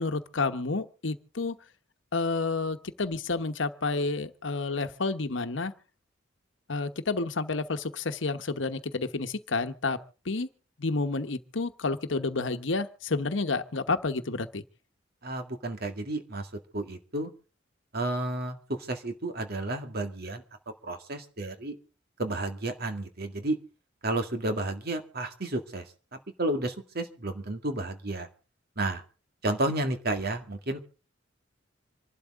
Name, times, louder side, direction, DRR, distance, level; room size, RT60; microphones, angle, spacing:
voice 1, 0.0-1.6 2.1-5.7 6.7-10.0 10.2-10.5 10.8-14.6, left 3 dB, 75° left, 1.1 m, -30 dB
voice 2, 15.2-16.5 16.7-17.3 17.9-20.4 20.8-21.8 22.2-23.6 24.0-25.9 26.1-28.3 28.8-29.0 29.4-30.8, right 2 dB, 55° right, 2.0 m, -31 dB
26.5 x 12.0 x 3.6 m
head